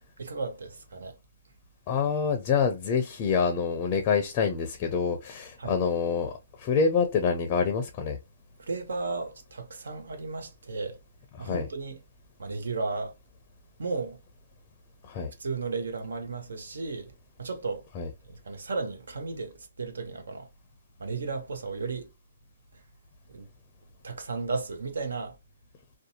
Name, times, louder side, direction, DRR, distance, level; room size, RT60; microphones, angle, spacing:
voice 1, 0.2-1.2 5.6-5.8 8.6-11.0 11.4-12.0 12.4-13.1 13.8-14.2 15.4-17.1 17.4-17.8 18.3-20.5 21.0-22.1 22.7-22.8 23.3-23.5 24.0-25.4, right 4 dB, 90° right, 0.9 m, -34 dB
voice 2, 1.9-8.2 11.4-11.7 15.0-15.3 18.0-18.1, left 6 dB, 25° left, 0.4 m, -26 dB
2.6 x 2.2 x 2.7 m
hypercardioid pair, 160°, 0 cm